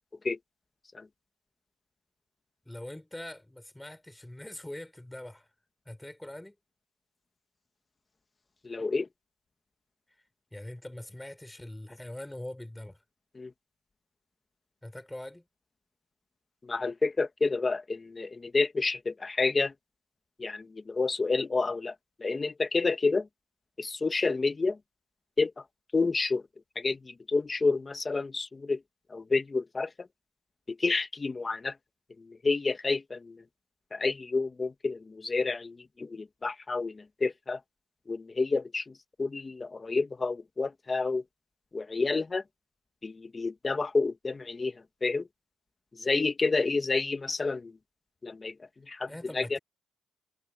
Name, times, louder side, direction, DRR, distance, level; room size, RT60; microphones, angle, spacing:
voice 1, 2.6-5.5 5.9-6.6 10.5-13.0 14.8-15.5 49.1-49.6, left 1 dB, 10° left, 4.5 m, -43 dB
voice 2, 8.6-9.1 13.4-13.5 16.6-19.7 20.4-21.9 22.2-23.3 23.8-24.8 25.4-25.6 25.9-26.4 26.8-28.8 29.1-30.1 30.7-31.7 32.2-33.4 33.9-37.6 38.1-41.2 41.7-42.4 43.0-45.3 46.0-47.8 48.2-48.5 48.9-49.6, left 3 dB, 25° left, 2.0 m, -29 dB
cardioid pair, 90°, 0 cm